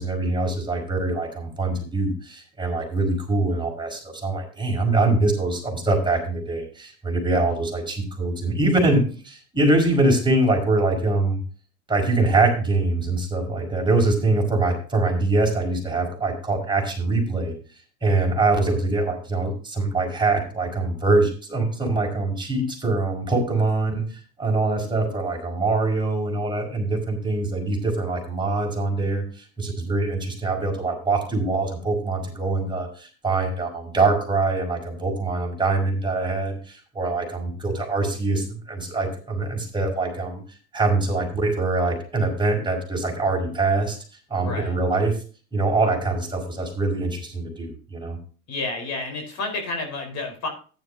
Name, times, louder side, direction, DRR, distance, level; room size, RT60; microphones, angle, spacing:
voice 1, 0.0-11.4 11.9-17.5 18.0-24.0 24.4-40.4 40.7-44.0 44.3-45.2 45.5-48.2, right 2 dB, 10° right, 1 dB, 5.4 m, -23 dB
voice 2, 44.4-44.7 48.5-50.5, left 3 dB, 40° left, 4 dB, 4.5 m, -30 dB
14.0 x 11.0 x 2.7 m, 0.38 s
hypercardioid pair, 90°, 42 cm